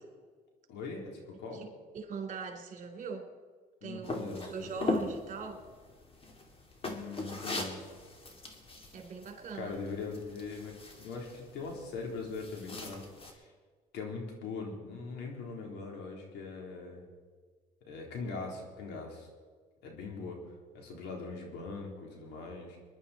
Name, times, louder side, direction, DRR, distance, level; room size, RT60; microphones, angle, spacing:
voice 1, 0.7-1.6 3.8-5.1 6.8-7.9 9.5-13.0 13.3-13.5 13.9-17.0 17.9-19.3 19.8-20.4 20.7-22.8, left 4 dB, 80° left, 1 dB, 3.6 m, -41 dB
voice 2, 1.9-3.3 3.8-5.6 8.9-9.8, right 5 dB, 50° right, 3 dB, 3.5 m, -41 dB
sound 1, 4.0-13.3, left 2 dB, 35° left, 2.5 m, -40 dB
22.0 x 11.0 x 4.2 m, 1.5 s
cardioid pair, 110°, 17 cm